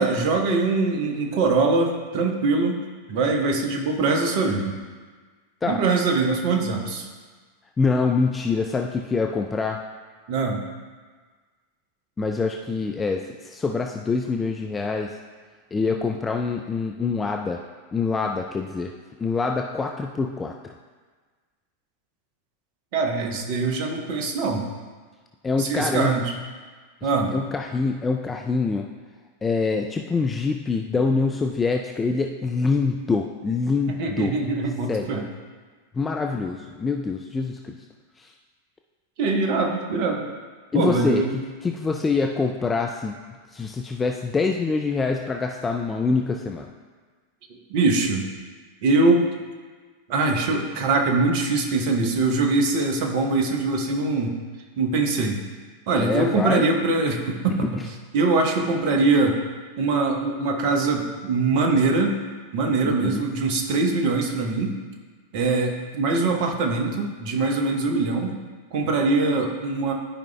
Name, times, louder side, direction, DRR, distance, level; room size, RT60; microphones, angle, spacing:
voice 1, 0.0-2.8 3.1-4.8 5.6-7.1 10.3-10.6 22.9-24.7 25.6-26.3 27.0-27.3 33.9-35.3 39.2-40.3 40.7-41.3 47.7-48.3 48.8-49.3 50.1-54.4 54.8-55.4 55.9-57.7 58.1-59.4 59.8-62.2 62.5-64.7 65.3-68.3 68.7-69.9, right 3 dB, 45° right, 2 dB, 1.0 m, -22 dB
voice 2, 7.8-9.8 12.2-15.1 15.7-17.6 17.9-18.9 19.2-20.7 25.4-26.1 27.3-28.9 29.4-34.3 34.9-35.1 35.9-37.8 38.2-38.3 40.7-43.1 43.5-46.7 56.0-56.6 62.8-63.2, left 4 dB, 15° left, 2 dB, 0.4 m, -25 dB
12.5 x 5.1 x 2.3 m, 1.5 s
figure-of-eight pair, 90°, 0 cm